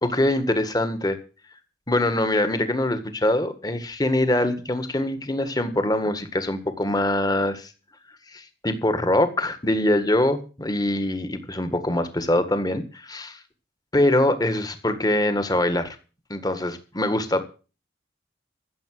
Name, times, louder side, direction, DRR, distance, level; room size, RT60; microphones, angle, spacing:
voice 1, 0.0-1.2 1.9-7.7 8.3-13.4 13.9-16.0 16.3-17.5, left 1 dB, 20° left, 9 dB, 1.7 m, -23 dB
14.5 x 7.4 x 7.6 m, 0.35 s
head